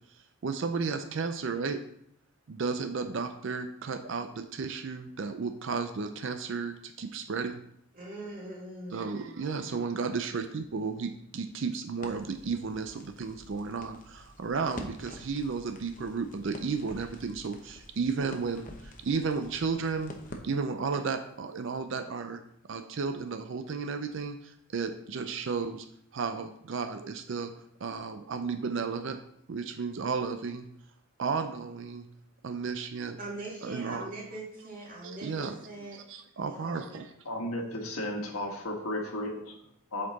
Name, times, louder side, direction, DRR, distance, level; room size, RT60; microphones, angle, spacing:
voice 1, 0.4-1.8 2.5-7.6 8.9-20.1 20.4-22.4 22.7-25.9 26.1-27.5 27.8-29.2 29.5-30.6 31.2-32.1 32.4-33.2 33.6-34.1 35.0-35.6 36.1-37.1, right 5 dB, 55° right, 8 dB, 0.4 m, -33 dB
voice 2, 7.9-9.7 10.3-10.4 33.2-36.0 36.4-37.0, right 2 dB, 40° right, -4 dB, 2.2 m, -42 dB
Crackle, 12.0-21.2, left 1 dB, 35° left, 0.7 m, -48 dB
voice 3, 37.2-39.4 39.9-40.1, left 1 dB, 80° left, 1 dB, 1.4 m, -34 dB
7.5 x 4.3 x 4.0 m, 0.70 s
head